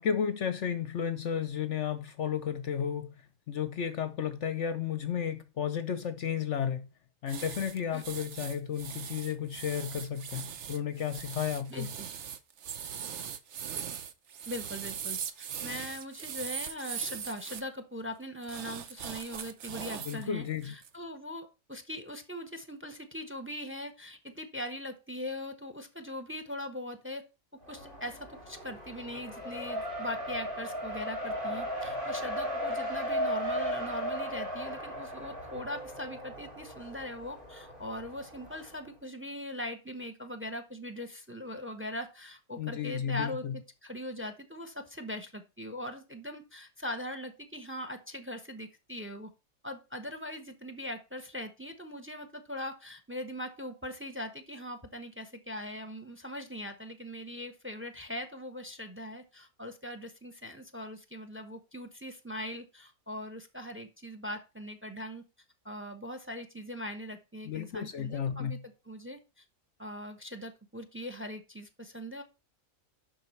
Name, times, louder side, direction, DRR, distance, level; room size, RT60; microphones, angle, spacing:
voice 1, 0.0-3.1 3.5-6.9 7.2-11.9 20.1-20.7 42.6-43.6 67.5-68.6, left 8 dB, 60° left, 0.9 m, -33 dB
sound 1, 7.3-17.6 18.4-20.2 20.6-20.9, right 8 dB, 55° right, 1.1 m, -40 dB
voice 2, 11.7-12.1 14.5-27.2 27.7-49.3 49.6-65.2 65.6-68.6 68.9-69.4 69.8-72.2, left 1 dB, 10° right, 1.0 m, -41 dB
Race car auto racing, 27.7-38.7, equal, 35° right, 2.5 m, -36 dB
11.5 x 4.4 x 4.4 m
omnidirectional pair, 1.5 m